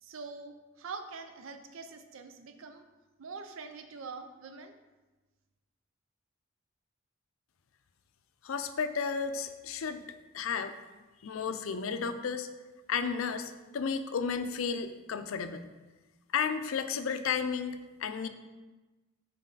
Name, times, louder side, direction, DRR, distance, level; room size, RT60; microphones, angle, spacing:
voice 1, 0.0-2.8 3.2-4.7, right 4 dB, 75° right, 7 dB, 0.6 m, -44 dB
voice 2, 8.4-10.0 10.3-10.7 11.2-12.5 12.9-15.7 16.3-18.3, left 6 dB, 80° left, 10 dB, 0.4 m, -33 dB
6.4 x 4.1 x 4.0 m, 1.2 s
head